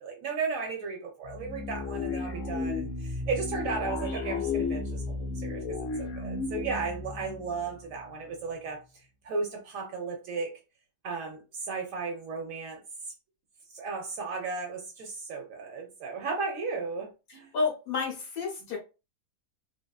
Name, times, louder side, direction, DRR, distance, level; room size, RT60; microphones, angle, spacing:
voice 1, 0.0-10.5 11.0-12.8 13.7-17.5, right 4 dB, 70° right, 1.0 m, -35 dB
sound 1, 1.2-8.4, left 4 dB, 65° left, 1.1 m, -34 dB
voice 2, 17.3-18.8, left 4 dB, 85° left, 1.6 m, -31 dB
3.3 x 2.5 x 2.3 m
omnidirectional pair, 1.5 m